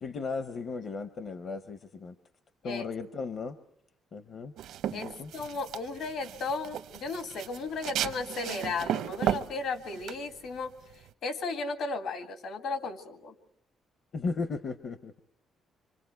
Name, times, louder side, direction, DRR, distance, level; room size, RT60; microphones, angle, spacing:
voice 1, 0.0-2.1 2.6-3.6 4.1-4.5 4.9-5.3 14.1-15.2, left 4 dB, 40° left, 11 dB, 0.8 m, -36 dB
sound 1, 4.6-11.1, right 11 dB, 80° right, 0.8 m, -35 dB
voice 2, 4.9-10.7 11.2-13.3, left 3 dB, 65° left, 9 dB, 1.9 m, -35 dB
26.5 x 26.0 x 4.6 m, 0.70 s
cardioid pair, 170°, 0 cm